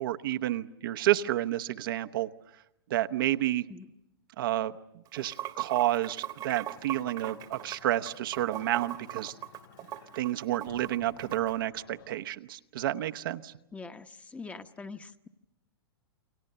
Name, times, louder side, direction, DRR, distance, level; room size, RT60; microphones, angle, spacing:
voice 1, 0.0-2.3 2.9-3.7 4.4-9.3 10.1-13.5, right 13 dB, 60° right, 9 dB, 0.9 m, -30 dB
Water / Sink (filling or washing), 5.1-11.5, right 13 dB, 30° right, 1.2 m, -40 dB
sound 1, 6.7-12.2, left 9 dB, 60° left, 3.1 m, -56 dB
voice 2, 13.7-15.3, left 4 dB, 10° left, 9 dB, 1.0 m, -43 dB
29.0 x 24.0 x 6.8 m, 0.88 s
hypercardioid pair, 115°, 13 cm